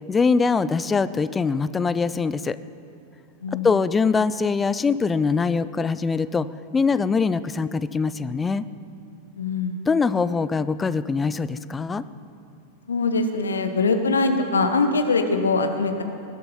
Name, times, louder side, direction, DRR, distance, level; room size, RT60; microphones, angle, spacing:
voice 1, 0.1-2.6 3.6-6.5 6.7-8.6 9.9-12.0, left 4 dB, 15° left, 15 dB, 0.5 m, -23 dB
voice 2, 9.4-9.8 12.9-16.0, left 3 dB, 70° left, 7 dB, 1.2 m, -22 dB
20.0 x 12.0 x 5.6 m, 2.6 s
figure-of-eight pair, 90°, 0 cm